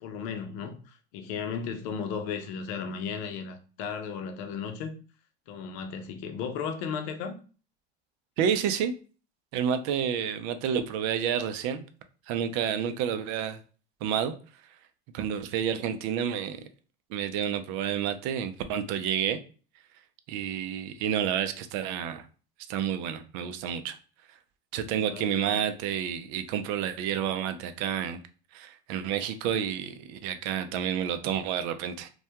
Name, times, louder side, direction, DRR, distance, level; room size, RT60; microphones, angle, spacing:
voice 1, 0.0-5.0 5.5-7.4 25.0-25.6, left 6 dB, 65° left, 0.6 m, -35 dB
voice 2, 8.4-8.9 9.5-11.8 12.3-13.6 14.0-14.3 15.1-16.6 17.1-19.4 20.3-22.3 22.7-24.0 24.7-28.2 28.5-32.1, right 8 dB, 60° right, 0.5 m, -29 dB
2.2 x 2.1 x 2.7 m
supercardioid pair, 95°, 34 cm